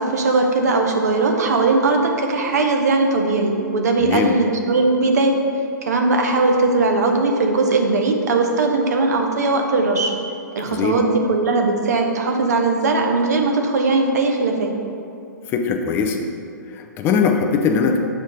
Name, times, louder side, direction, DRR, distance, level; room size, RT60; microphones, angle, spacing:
voice 1, 0.0-5.3 5.8-10.2 10.5-14.7, right 3 dB, 55° right, 3 dB, 0.8 m, -19 dB
voice 2, 4.0-4.3 10.6-11.0 15.5-16.2 16.7-18.0, left 6 dB, 20° left, 4 dB, 0.5 m, -20 dB
6.4 x 3.1 x 5.3 m, 2.5 s
figure-of-eight pair, 115°, 10 cm